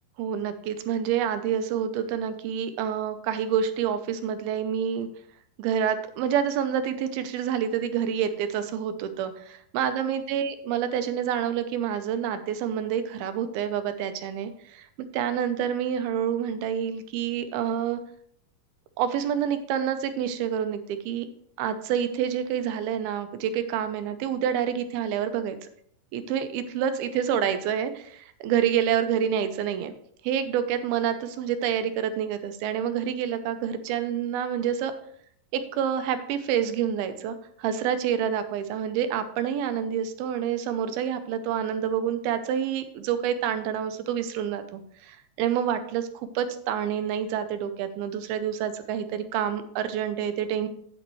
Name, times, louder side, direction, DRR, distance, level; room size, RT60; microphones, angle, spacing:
voice 1, 0.2-5.1 5.6-14.9 15.1-18.0 19.0-21.3 21.6-25.6 26.1-29.9 30.2-34.9 35.5-50.7, right 9 dB, 85° right, 9 dB, 2.6 m, -28 dB
9.2 x 8.8 x 3.1 m, 0.64 s
omnidirectional pair, 4.4 m